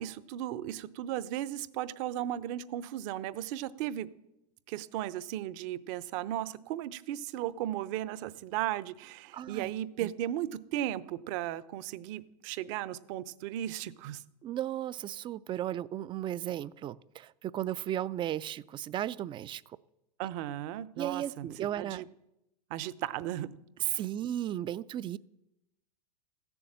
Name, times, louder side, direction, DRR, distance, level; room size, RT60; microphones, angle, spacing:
voice 1, 0.0-4.1 4.7-14.2 20.2-21.5 21.8-22.0 22.7-23.5 23.8-24.0, right 12 dB, 50° right, 17 dB, 0.8 m, -36 dB
voice 2, 9.3-9.7 10.0-10.1 14.4-19.6 21.0-22.0 23.9-25.2, right 11 dB, 25° right, 20 dB, 0.4 m, -35 dB
15.5 x 7.1 x 8.6 m, 0.89 s
hypercardioid pair, 105°, 21 cm